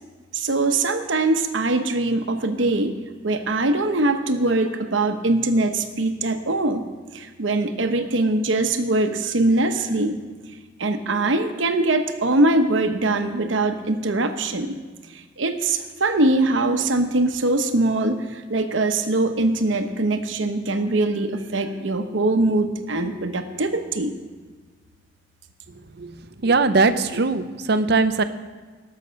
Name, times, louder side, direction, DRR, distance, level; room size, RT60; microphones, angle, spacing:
voice 1, 0.3-3.0 3.2-10.2 10.8-14.8 15.4-24.1, right 2 dB, 75° right, 7 dB, 1.0 m, -22 dB
voice 2, 26.4-28.2, right 3 dB, 55° right, 11 dB, 0.6 m, -20 dB
18.5 x 6.9 x 5.2 m, 1.4 s
head